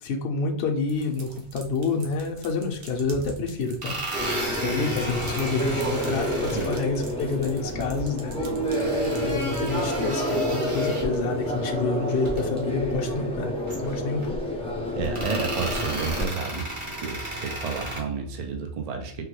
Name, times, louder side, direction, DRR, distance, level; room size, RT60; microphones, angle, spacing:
voice 1, 0.0-4.3 4.6-8.7 9.2-13.5 13.8-14.3, left 4 dB, 70° left, 2 dB, 0.8 m, -28 dB
sound 1, 0.9-10.0, right 2 dB, 75° right, 1.0 m, -45 dB
sound 2, 2.9-3.0 3.7-6.8 8.7-11.2 12.1-12.4 12.8-12.9 13.7-14.3 15.0-18.0, right 1 dB, 30° right, 0.7 m, -34 dB
sound 3, 4.1-16.3, equal, 10° left, 0.3 m, -29 dB
voice 2, 15.0-16.7 17.0-19.2, right 5 dB, 55° right, 3 dB, 0.4 m, -31 dB
3.6 x 2.2 x 3.0 m, 0.63 s
omnidirectional pair, 1.2 m